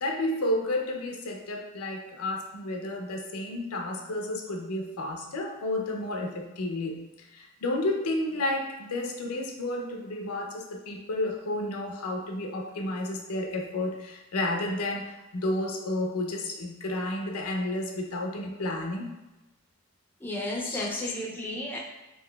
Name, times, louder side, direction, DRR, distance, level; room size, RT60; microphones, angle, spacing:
voice 1, 0.0-19.1 20.6-21.1, left 1 dB, 85° left, 2 dB, 0.5 m, -31 dB
voice 2, 20.2-21.8, left 1 dB, 10° left, -2 dB, 0.3 m, -33 dB
3.8 x 2.7 x 2.2 m, 1.1 s
head